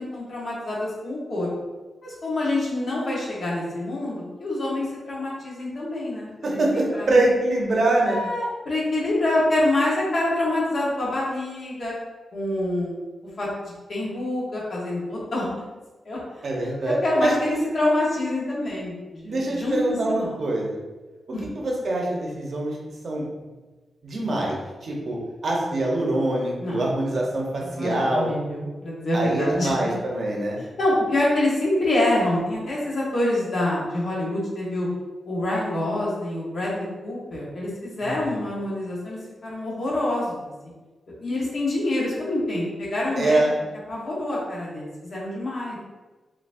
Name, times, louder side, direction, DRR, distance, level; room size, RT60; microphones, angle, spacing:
voice 1, 0.0-1.5 2.0-7.2 8.1-11.9 12.3-12.9 13.4-13.5 13.9-15.5 16.0-16.2 16.8-20.4 21.3-21.5 26.6-26.8 27.6-29.7 30.8-34.9 35.2-40.4 41.2-43.5 43.9-45.8, left 1 dB, 55° left, -6 dB, 1.3 m, -26 dB
voice 2, 6.4-8.2 16.4-17.6 19.2-20.8 21.3-22.8 23.0-23.2 24.0-25.2 25.4-28.3 29.1-30.6 38.0-38.3 43.2-43.5, right 2 dB, 50° right, -2 dB, 0.8 m, -24 dB
4.2 x 2.8 x 2.6 m, 1.2 s
wide cardioid pair, 160°, 0 cm